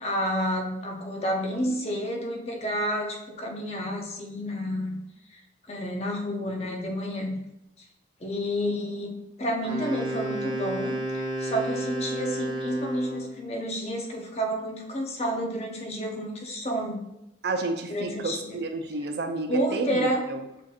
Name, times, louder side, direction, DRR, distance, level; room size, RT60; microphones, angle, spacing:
voice 1, 0.0-5.0 5.3-5.4 5.7-7.4 8.2-17.0 17.9-18.6 19.5-20.2, equal, 35° left, 1 dB, 0.6 m, -30 dB
Wind instrument woodwind instrument, 9.6-13.4, right 1 dB, 20° right, 0.8 m, -32 dB
voice 2, 17.4-20.4, right 3 dB, 55° right, 6 dB, 0.4 m, -30 dB
6.2 x 2.8 x 2.4 m, 0.89 s
head